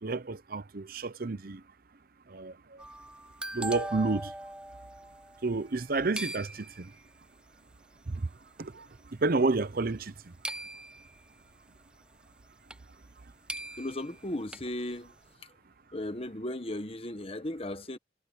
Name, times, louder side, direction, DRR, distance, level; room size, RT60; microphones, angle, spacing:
voice 1, 0.0-1.6 2.3-2.8 3.5-4.3 5.4-6.9 8.1-8.3 8.6-10.3, right 3 dB, 50° right, 0.7 m, -30 dB
sound 1, 2.5-16.5, right 5 dB, 90° right, 7.5 m, -67 dB
sound 2, 2.8-5.9 6.2-7.1 8.0-8.1 8.6-9.0 10.4-11.3 12.7-12.8 13.1-13.2 13.5-14.7, right 1 dB, 5° right, 0.5 m, -40 dB
voice 2, 13.8-15.1 15.9-18.0, left 1 dB, 30° left, 1.4 m, -36 dB
head